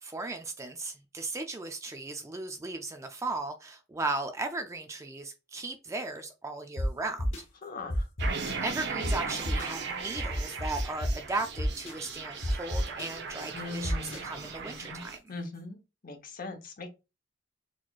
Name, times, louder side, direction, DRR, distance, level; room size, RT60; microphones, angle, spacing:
voice 1, 0.0-7.3 8.3-15.3, right 3 dB, 15° right, 0.3 m, -36 dB
sound 1, 6.8-6.9 7.2-7.4 7.9-8.5 9.0-9.1 9.4-9.7 10.2-11.1 11.6-11.9 12.4-13.1 13.8-14.2, equal, 75° left, 1.0 m, -29 dB
voice 2, 7.6-8.1 13.5-14.3 14.6-15.8 16.0-16.9, left 3 dB, 45° left, 0.9 m, -41 dB
sound 2, 8.2-15.2, right 5 dB, 60° right, 0.7 m, -38 dB
4.1 x 3.0 x 2.3 m
head